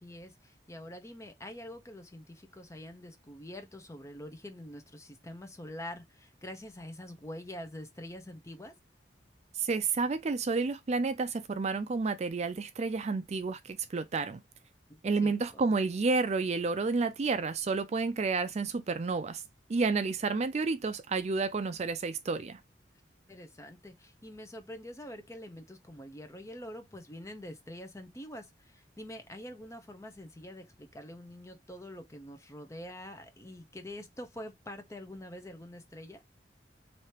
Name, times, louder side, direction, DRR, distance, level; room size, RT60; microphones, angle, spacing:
voice 1, 0.0-8.7 14.9-15.6 23.3-36.2, left 1 dB, 15° left, 0.8 m, -45 dB
voice 2, 9.6-14.4 15.0-19.4 19.7-22.6, right 4 dB, 40° right, 0.4 m, -30 dB
3.2 x 2.8 x 4.3 m
head